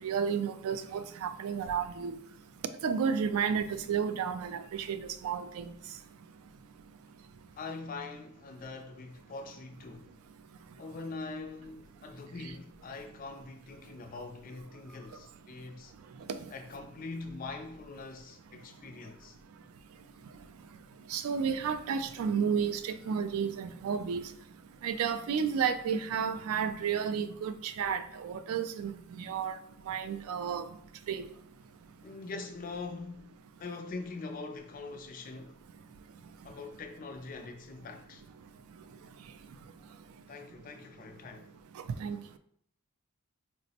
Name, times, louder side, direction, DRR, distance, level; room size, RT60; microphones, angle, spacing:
voice 1, 0.0-2.1 2.8-5.7 16.4-16.5 21.1-24.2 24.8-29.6 29.9-30.7 31.1-31.3 42.0-42.2, right 7 dB, 80° right, 0.3 m, -32 dB
voice 2, 7.6-10.1 10.8-15.9 16.5-19.4 32.0-33.3 33.6-35.6 36.4-38.2 40.3-41.5, left 3 dB, 40° left, 0.3 m, -43 dB
4.2 x 2.0 x 2.7 m
head